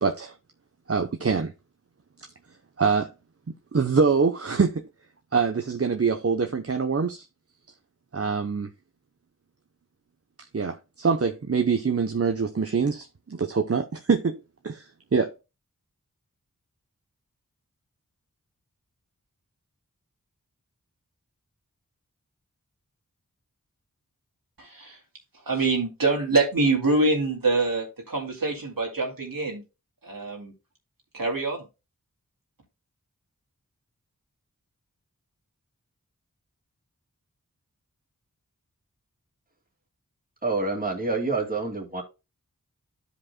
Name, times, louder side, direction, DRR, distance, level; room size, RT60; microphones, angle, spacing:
voice 1, 0.0-0.3 0.9-1.5 2.8-3.1 3.7-4.9 5.3-7.2 8.1-8.7 10.5-14.4 14.6-15.3, right 5 dB, 45° right, 0.8 m, -24 dB
voice 2, 24.6-25.0 25.5-29.6 30.0-30.5 31.1-31.6, right 3 dB, 80° right, 2.3 m, -25 dB
voice 3, 40.4-42.0, right 3 dB, 25° right, 2.3 m, -27 dB
13.5 x 5.0 x 2.2 m
wide cardioid pair, 40°, 34 cm